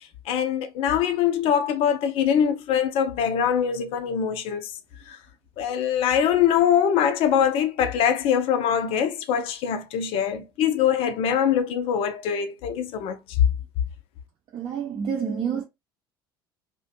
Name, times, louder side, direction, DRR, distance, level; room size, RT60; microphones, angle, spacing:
voice 1, 0.3-4.7 5.6-13.5, left 8 dB, 50° left, 0.5 m, -23 dB
voice 2, 14.5-15.6, right 7 dB, 40° right, 0.6 m, -28 dB
2.5 x 2.1 x 2.5 m
figure-of-eight pair, 60°, 12 cm